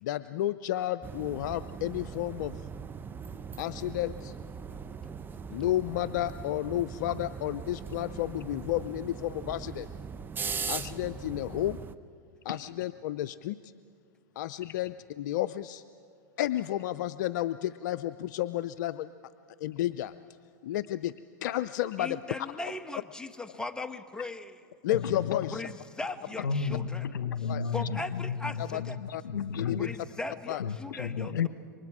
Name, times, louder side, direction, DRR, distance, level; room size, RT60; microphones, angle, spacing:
voice 1, 0.0-2.6 3.6-4.4 5.5-9.9 10.7-11.8 12.4-13.6 14.4-15.8 16.4-19.1 19.6-20.1 20.6-21.1 21.4-22.2 24.8-25.6 27.5-27.7 28.6-28.8 29.1-29.2 29.6-29.8 30.5-30.6, left 13 dB, 70° left, 14 dB, 0.5 m, -31 dB
sound 1, 1.0-12.0, right 6 dB, 20° right, 0.8 m, -40 dB
voice 2, 10.5-10.9 12.5-12.6 14.6-14.7 23.5-23.6 24.9-25.6 26.4-30.0 30.6-31.5, left 6 dB, 85° left, 12 dB, 1.1 m, -33 dB
voice 3, 22.0-24.6 25.5-27.0 27.7-29.0 29.8-31.5, left 2 dB, 5° left, 10 dB, 1.0 m, -38 dB
28.0 x 24.0 x 4.9 m, 2.3 s
hypercardioid pair, 110°, 10 cm